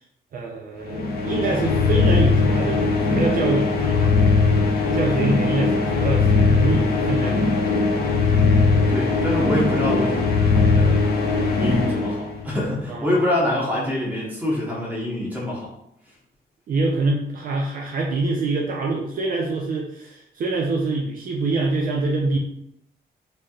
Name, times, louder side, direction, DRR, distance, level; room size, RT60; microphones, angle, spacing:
voice 1, 0.3-4.2 4.9-7.5 12.9-13.2 16.7-22.4, right 3 dB, 55° right, -1 dB, 0.4 m, -25 dB
sound 1, 0.8-12.7, left 4 dB, 60° left, 0.6 m, -20 dB
voice 2, 8.3-8.6 8.9-11.1 11.6-15.7, left 1 dB, 10° right, -5 dB, 1.1 m, -25 dB
3.2 x 2.7 x 2.3 m, 0.77 s
cardioid pair, 135°, 18 cm